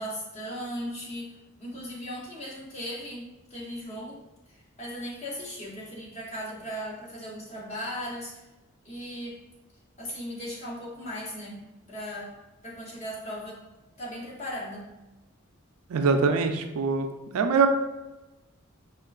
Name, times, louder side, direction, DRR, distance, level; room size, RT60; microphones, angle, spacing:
voice 1, 0.0-4.2 4.5-8.4 8.8-9.4 10.0-12.3 12.6-13.6 14.0-14.9, equal, 30° left, -4 dB, 0.8 m, -37 dB
voice 2, 15.9-17.1 17.3-17.7, right 5 dB, 85° right, 7 dB, 0.4 m, -23 dB
4.4 x 2.4 x 2.3 m, 1.0 s
head